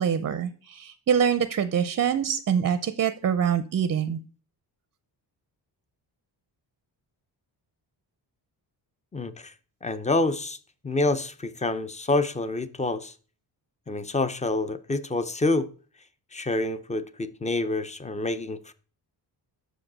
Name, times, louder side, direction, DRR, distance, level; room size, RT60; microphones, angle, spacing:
voice 1, 0.0-4.2, right 8 dB, 40° right, 0.5 m, -25 dB
voice 2, 9.1-9.5 9.8-10.6 10.8-13.1 13.9-15.7 16.3-18.7, left 2 dB, 15° left, 0.4 m, -27 dB
6.8 x 5.0 x 6.0 m
wide cardioid pair, 140°, 44 cm